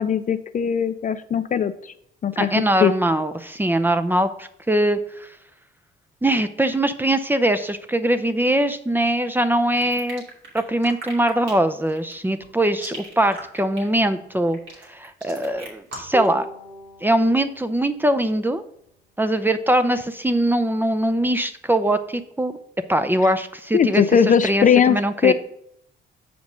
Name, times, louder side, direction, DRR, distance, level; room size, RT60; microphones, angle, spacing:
voice 1, 0.0-1.9 2.2-2.9 23.7-25.0 25.2-25.3, left 7 dB, 40° left, 12 dB, 0.5 m, -19 dB
voice 2, 2.4-5.3 6.2-10.2 10.5-14.6 14.9-16.5 17.0-18.6 19.2-22.6 22.9-25.3, right 1 dB, 10° right, 10 dB, 0.6 m, -22 dB
sound 1, 9.8-16.3, right 2 dB, 75° right, 2.7 m, -39 dB
Bowed string instrument, 16.1-19.2, right 1 dB, 40° right, 2.9 m, -37 dB
6.8 x 5.1 x 5.2 m, 0.71 s
cardioid pair, 90°, 20 cm